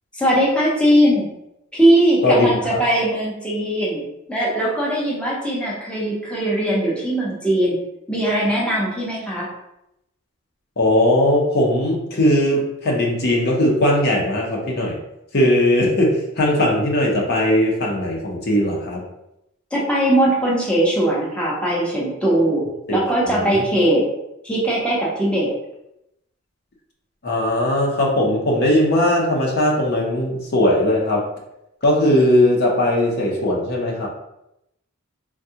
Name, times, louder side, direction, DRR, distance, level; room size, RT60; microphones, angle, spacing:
voice 1, 0.1-1.3 1.7-7.8 8.1-9.5 19.7-22.6 22.9-24.0 24.4-25.5, right 1 dB, 5° left, -6 dB, 0.6 m, -20 dB
voice 2, 2.2-2.8 10.8-15.0 15.3-19.0 23.3-23.6 27.2-31.2 31.8-34.1, left 1 dB, 50° left, -2 dB, 0.7 m, -19 dB
3.5 x 2.3 x 2.7 m, 0.84 s
head